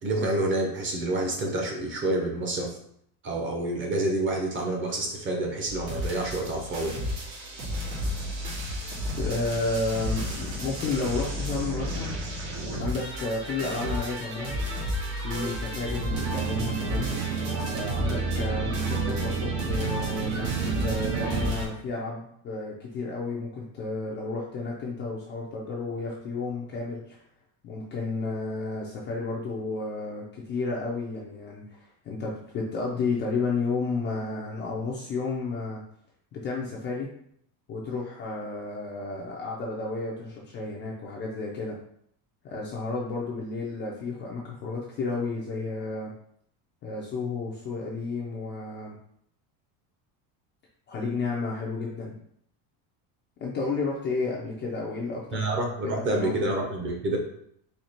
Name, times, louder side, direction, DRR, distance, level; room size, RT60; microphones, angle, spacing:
voice 1, 0.0-2.8 3.2-7.0 55.3-57.2, right 2 dB, 25° right, 2 dB, 0.7 m, -28 dB
sound 1, 5.7-21.6, equal, 85° right, 1.9 m, -33 dB
voice 2, 9.2-12.2 12.8-14.6 15.2-17.1 17.7-27.2 27.6-35.8 36.3-37.1 37.7-41.8 42.4-46.1 46.8-49.0 50.9-52.1 53.4-55.5 55.8-56.3, left 3 dB, 25° left, -3 dB, 0.4 m, -32 dB
sound 2, 16.1-21.5, right 6 dB, 70° right, 0.7 m, -30 dB
4.4 x 2.8 x 4.3 m, 0.68 s
cardioid pair, 165°, 46 cm